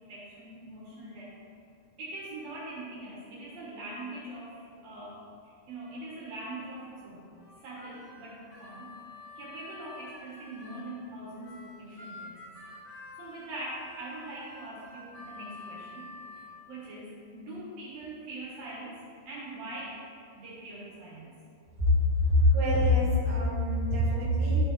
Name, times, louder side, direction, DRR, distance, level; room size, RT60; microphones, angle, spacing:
voice 1, 0.0-1.3 2.0-5.2 5.4-7.3 7.6-8.9 9.4-12.6 13.2-16.1 16.7-20.0 20.3-21.4, right 1 dB, 60° right, -6 dB, 2.8 m, -42 dB
Harmonica, 7.4-10.9 11.4-16.5, left 2 dB, 50° left, 2.0 m, -48 dB
voice 2, 22.2-24.6, left 1 dB, 35° right, -9 dB, 1.7 m, -24 dB
12.0 x 4.4 x 4.2 m, 2.5 s
omnidirectional pair, 5.2 m